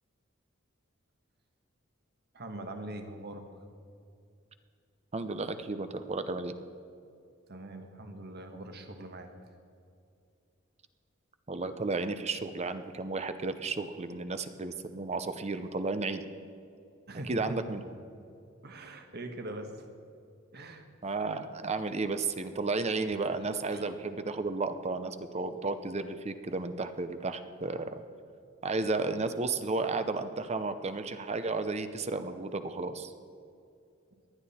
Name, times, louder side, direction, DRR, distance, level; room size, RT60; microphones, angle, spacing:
voice 1, 2.3-3.4 7.5-9.3 17.1-17.6 18.6-19.9 20.5-20.9 23.7-23.9, right 1 dB, 55° right, 5 dB, 1.4 m, -42 dB
voice 2, 5.1-6.5 11.5-16.2 17.3-17.8 21.0-28.0 28.6-33.1, right 3 dB, 35° right, 10 dB, 0.7 m, -33 dB
19.0 x 11.5 x 4.2 m, 2.4 s
head